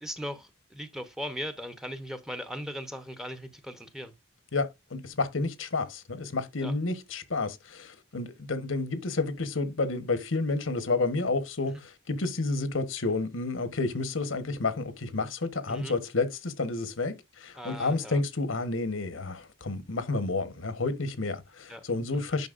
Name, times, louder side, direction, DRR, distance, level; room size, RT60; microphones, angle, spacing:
voice 1, 0.0-4.1 6.6-6.7 15.7-15.9 17.6-18.2 21.7-21.8, equal, ahead, 0.8 m, -38 dB
voice 2, 4.5-22.5, left 3 dB, 85° left, 1.2 m, -30 dB
9.4 x 5.8 x 2.5 m
head